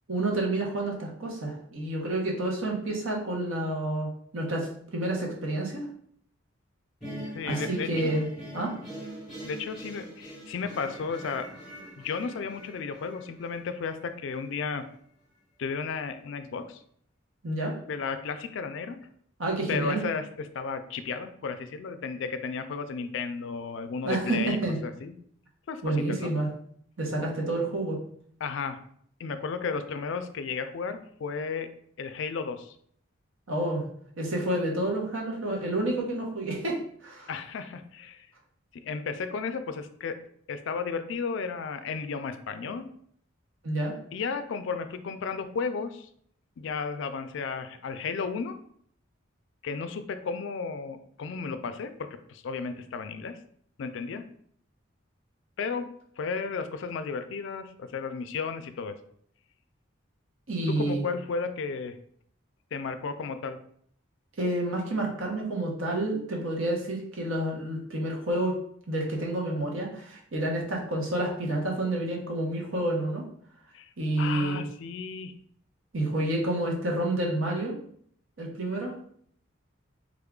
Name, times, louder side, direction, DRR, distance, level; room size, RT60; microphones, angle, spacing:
voice 1, 0.1-4.1 4.3-4.7 4.9-5.9 7.5-8.2 8.5-8.7 17.4-17.7 19.4-20.0 24.0-24.8 25.8-26.5 27.0-28.0 33.5-33.8 34.2-37.3 43.6-43.9 60.5-61.0 64.4-68.6 68.9-73.2 74.0-74.6 75.9-77.8 78.4-78.9, right 1 dB, 80° right, -1 dB, 0.9 m, -29 dB
sound 1, 7.0-14.1, equal, ahead, 1.2 m, -42 dB
voice 2, 7.3-8.2 9.4-14.8 15.6-16.8 17.9-19.0 19.7-20.2 20.5-24.6 24.8-25.1 25.7-26.3 28.4-28.8 29.2-31.7 32.0-32.7 37.3-38.3 38.8-40.1 40.5-42.9 44.1-46.1 46.6-48.5 49.6-51.9 52.3-53.4 53.8-54.2 55.6-55.9 56.2-59.0 60.8-62.0 62.7-63.6 73.7-73.9 74.2-75.3, left 5 dB, 65° left, 9 dB, 0.3 m, -33 dB
3.5 x 2.3 x 3.6 m, 0.64 s
head